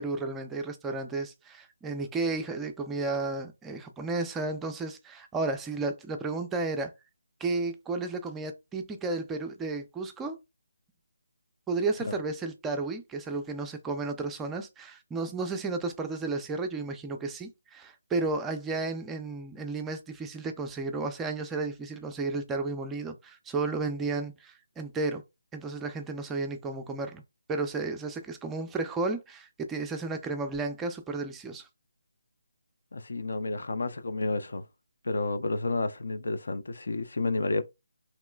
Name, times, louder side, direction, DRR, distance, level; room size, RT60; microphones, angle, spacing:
voice 1, 0.0-6.9 7.4-10.4 11.7-25.2 25.5-27.2 27.5-31.7, right 3 dB, 10° right, 0.4 m, -33 dB
voice 2, 32.9-34.6 35.0-37.7, left 3 dB, 70° left, 0.4 m, -30 dB
3.0 x 2.9 x 2.2 m
figure-of-eight pair, 155°, 0 cm